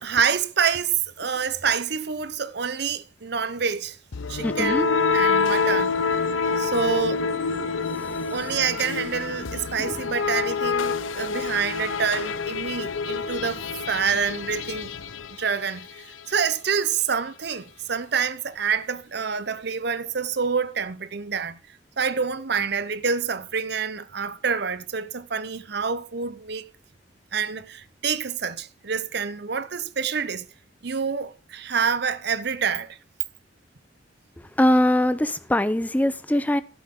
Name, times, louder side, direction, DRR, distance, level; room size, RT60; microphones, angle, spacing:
voice 1, 0.0-4.0 4.3-4.9 5.1-6.0 6.6-7.3 8.3-14.9 15.4-21.6 22.0-26.7 27.3-30.5 30.8-33.0, right 6 dB, 55° right, 0.8 m, -27 dB
sound 1, 4.1-16.0, left 5 dB, 85° left, 0.7 m, -27 dB
voice 2, 4.4-4.9 9.9-10.0 34.6-36.6, left 1 dB, 10° left, 0.5 m, -22 dB
12.0 x 11.0 x 3.7 m
head